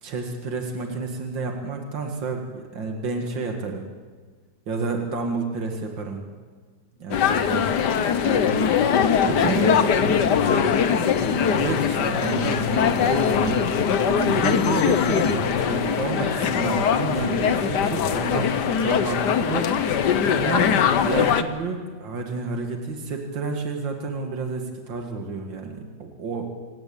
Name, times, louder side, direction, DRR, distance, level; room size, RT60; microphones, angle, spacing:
voice 1, 0.0-3.9 4.7-6.3 7.0-7.7 9.2-9.7 11.6-19.7 20.3-20.7 21.0-26.5, right 4 dB, 85° right, 3 dB, 2.7 m, -30 dB
sound 1, 7.1-21.4, left 7 dB, 70° left, 1.6 m, -21 dB
sound 2, 7.5-7.9 8.2-8.9 9.2-9.9 10.2-10.9 11.2-11.9 12.2-12.9 13.2-13.9 14.2-14.9 15.2-15.5, right 2 dB, 50° right, 2.5 m, -34 dB
voice 2, 8.2-8.5 9.2-11.3 12.1-12.3 12.7-12.9, right 1 dB, 15° right, 1 dB, 3.4 m, -34 dB
26.5 x 16.5 x 8.9 m, 1.5 s
omnidirectional pair, 2.0 m